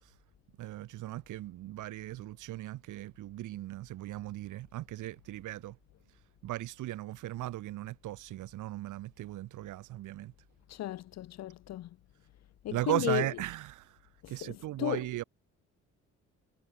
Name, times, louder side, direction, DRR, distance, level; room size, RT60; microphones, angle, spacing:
voice 1, 0.6-5.8 6.4-10.3 12.7-14.0 14.3-15.2, right 15 dB, 85° right, 1.7 m, -37 dB
voice 2, 10.7-11.9 12.6-13.2 14.2-15.0, left 14 dB, 60° left, 0.6 m, -34 dB
cardioid pair, 90°, 30 cm